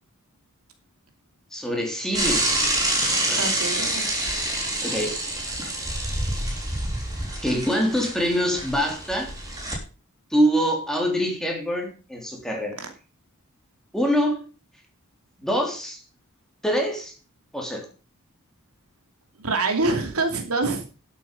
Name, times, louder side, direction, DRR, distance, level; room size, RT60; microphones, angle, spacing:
voice 1, 1.5-2.5 3.3-3.5 3.9-4.0 4.8-5.2 7.4-9.3 10.3-12.8 13.9-14.5 15.4-16.0 16.6-17.1 17.5-17.9, equal, ahead, 1 dB, 3.4 m, -25 dB
Bicycle / Mechanisms, 2.1-9.8, right 1 dB, 15° right, 3.5 m, -27 dB
voice 2, 3.4-4.0 12.8-12.9 19.4-20.9, right 3 dB, 80° right, 5 dB, 2.7 m, -25 dB
12.0 x 8.3 x 5.3 m, 0.34 s
head